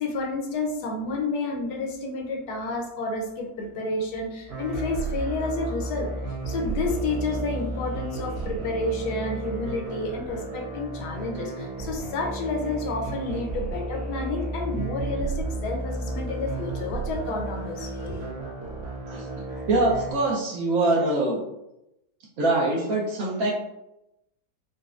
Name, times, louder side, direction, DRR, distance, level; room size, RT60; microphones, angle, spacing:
voice 1, 0.0-6.1 6.5-18.3, left 2 dB, 75° left, 2 dB, 1.1 m, -30 dB
sound 1, 4.5-20.1, right 2 dB, 50° right, 0.9 m, -33 dB
voice 2, 19.7-21.4 22.4-23.5, right 2 dB, 65° right, -3 dB, 1.0 m, -23 dB
4.0 x 2.2 x 2.4 m, 0.88 s
omnidirectional pair, 1.8 m